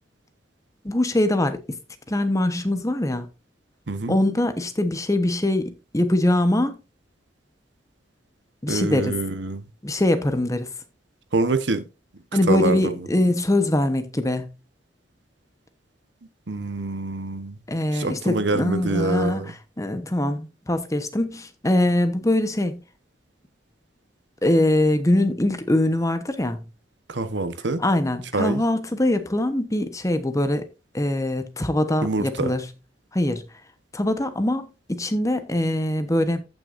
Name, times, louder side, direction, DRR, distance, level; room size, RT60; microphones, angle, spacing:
voice 1, 0.8-1.6 2.1-3.3 4.1-6.8 8.6-9.1 9.8-10.7 12.3-14.5 17.7-19.4 19.8-22.8 24.4-26.6 27.8-30.6 30.9-32.6 33.1-33.4 33.9-36.4, left 1 dB, 20° left, 1.0 m, -22 dB
voice 2, 3.9-4.2 8.7-9.7 11.3-11.9 12.5-13.1 16.5-17.6 17.9-19.5 27.1-27.8 28.3-28.6 32.0-32.5, right 3 dB, 75° right, 1.1 m, -25 dB
15.5 x 6.1 x 2.6 m
head